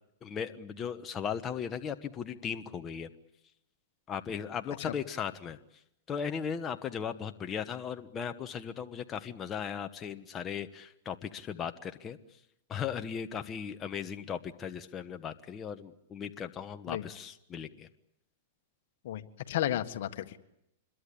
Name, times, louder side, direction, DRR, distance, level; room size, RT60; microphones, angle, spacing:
voice 1, 0.2-3.1 4.1-5.6 6.1-12.2 12.7-17.9, left 7 dB, 25° left, 7 dB, 1.2 m, -37 dB
voice 2, 19.0-20.4, left 12 dB, 65° left, 10 dB, 1.6 m, -33 dB
26.0 x 22.5 x 8.6 m, 0.80 s
hypercardioid pair, 130°, 0 cm